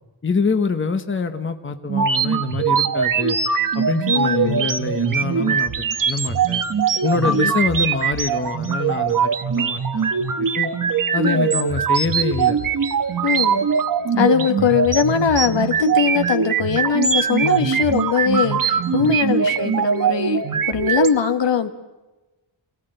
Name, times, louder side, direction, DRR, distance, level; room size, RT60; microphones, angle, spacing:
voice 1, 0.2-3.4 3.7-6.6 7.0-10.1 10.3-10.7 11.1-12.6 17.4-17.7 18.9-19.2, left 4 dB, 25° left, 7 dB, 1.1 m, -25 dB
sound 1, 1.9-21.1, right 6 dB, 45° right, 1.0 m, -21 dB
voice 2, 4.1-4.7 7.2-7.5 11.2-11.5 13.2-13.7 14.2-21.7, left 7 dB, 65° left, 8 dB, 1.6 m, -21 dB
28.0 x 18.0 x 7.9 m, 1.1 s
wide cardioid pair, 165°, 47 cm